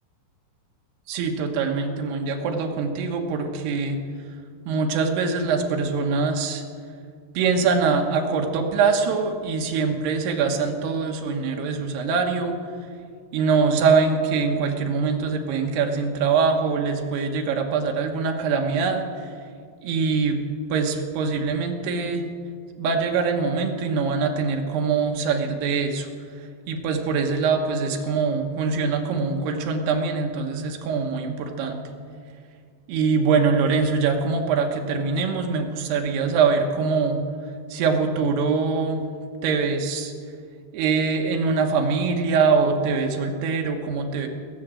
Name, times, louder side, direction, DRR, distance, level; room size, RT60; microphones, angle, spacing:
voice 1, 1.1-4.0 4.7-6.6 7.3-12.6 13.3-19.3 19.8-20.4 20.7-22.2 22.8-26.1 26.4-31.8 32.9-37.2 37.7-39.1 39.4-40.1 40.7-44.3, right 5 dB, 90° right, 3 dB, 3.3 m, -23 dB
20.0 x 8.5 x 7.6 m, 2.2 s
omnidirectional pair, 4.5 m